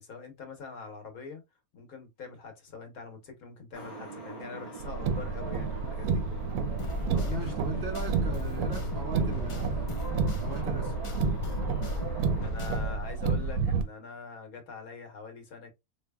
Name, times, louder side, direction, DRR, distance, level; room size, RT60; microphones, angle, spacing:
voice 1, 0.0-1.4 1.7-6.2 7.3-7.5 12.4-15.7, left 4 dB, 70° left, 1.5 m, -44 dB
sound 1, 3.7-12.5, right 3 dB, 45° right, 2.3 m, -43 dB
Car, 4.8-13.8, right 4 dB, 85° right, 1.2 m, -30 dB
sound 2, 6.8-13.0, left 2 dB, 35° left, 0.5 m, -37 dB
voice 2, 7.1-10.0 10.4-10.9, right 4 dB, 60° right, 0.7 m, -38 dB
4.1 x 3.1 x 2.2 m
omnidirectional pair, 1.6 m